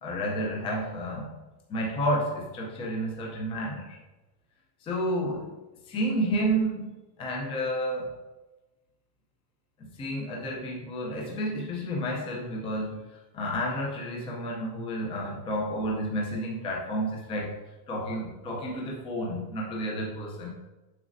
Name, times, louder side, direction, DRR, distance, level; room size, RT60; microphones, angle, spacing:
voice 1, 0.0-1.3 1.7-4.0 4.8-5.6 5.9-8.2 9.8-17.6 17.9-20.5, equal, 10° left, -2 dB, 0.5 m, -31 dB
7.5 x 6.0 x 2.6 m, 1.1 s
supercardioid pair, 180°, 50 cm